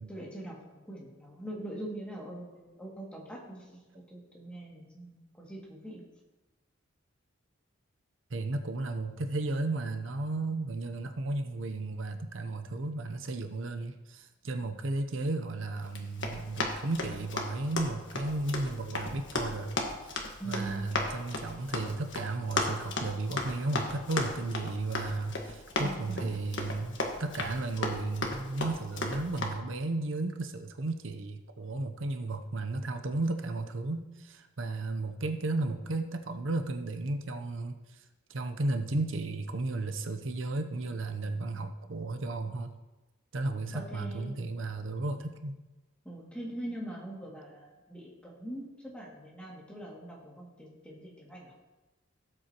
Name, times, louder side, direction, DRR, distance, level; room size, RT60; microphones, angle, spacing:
voice 1, 0.1-0.6 0.9-6.0 20.4-20.9 25.8-26.4 43.7-44.3 46.0-51.5, right 1 dB, 5° left, -4 dB, 2.3 m, -42 dB
voice 2, 8.3-38.0 38.3-42.7 43.3-45.6, right 2 dB, 75° right, 7 dB, 0.7 m, -34 dB
Run, 15.9-29.5, left 2 dB, 65° left, 1.5 m, -36 dB
16.5 x 8.0 x 3.0 m, 1.1 s
head